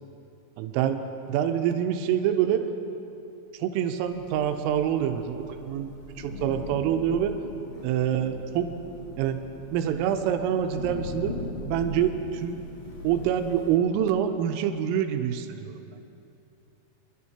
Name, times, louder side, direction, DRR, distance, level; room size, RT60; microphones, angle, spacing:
voice 1, 0.6-1.0 1.3-2.6 3.6-5.9 6.2-7.4 7.8-8.7 9.2-9.4 9.7-11.4 11.6-12.6 13.0-15.8, right 9 dB, 85° right, 7 dB, 3.3 m, -26 dB
Thunder / Rain, 4.0-13.8, left 2 dB, 60° left, 2.8 m, -40 dB
25.5 x 12.0 x 2.8 m, 2.8 s
omnidirectional pair, 5.8 m